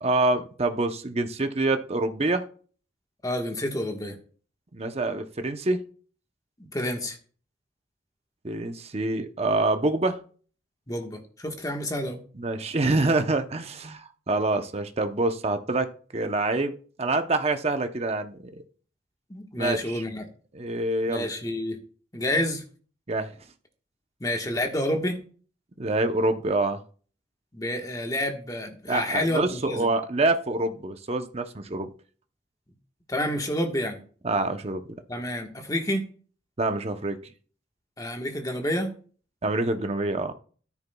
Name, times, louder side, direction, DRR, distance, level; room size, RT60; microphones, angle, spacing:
voice 1, 0.0-2.4 4.7-5.8 8.4-10.2 12.3-16.7 17.0-18.6 19.6-20.0 20.5-21.3 23.1-23.3 25.8-26.8 28.9-31.9 34.2-35.0 36.6-37.2 39.4-40.3, right 2 dB, 35° right, 8 dB, 0.8 m, -26 dB
voice 2, 3.2-4.2 6.6-7.2 10.9-12.2 19.3-20.2 21.1-21.8 22.1-22.6 24.2-25.2 27.5-29.9 33.1-34.0 35.1-36.0 38.0-38.9, left 1 dB, 20° left, 3 dB, 1.3 m, -29 dB
13.0 x 9.8 x 2.3 m, 0.43 s
head